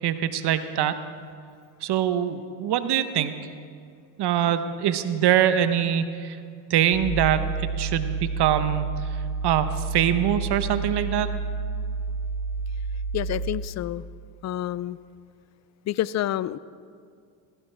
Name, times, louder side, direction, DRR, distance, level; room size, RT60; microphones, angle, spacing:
voice 1, 0.0-1.0 1.8-3.4 4.2-6.4 6.7-9.0 9.4-11.3, right 10 dB, 50° right, 11 dB, 1.0 m, -23 dB
sound 1, 6.9-13.7, right 4 dB, 75° right, 1.6 m, -30 dB
voice 2, 13.1-14.0 14.4-15.0 15.9-16.6, left 13 dB, 35° left, 19 dB, 0.4 m, -28 dB
17.0 x 15.0 x 3.4 m, 2.2 s
hypercardioid pair, 70°, 49 cm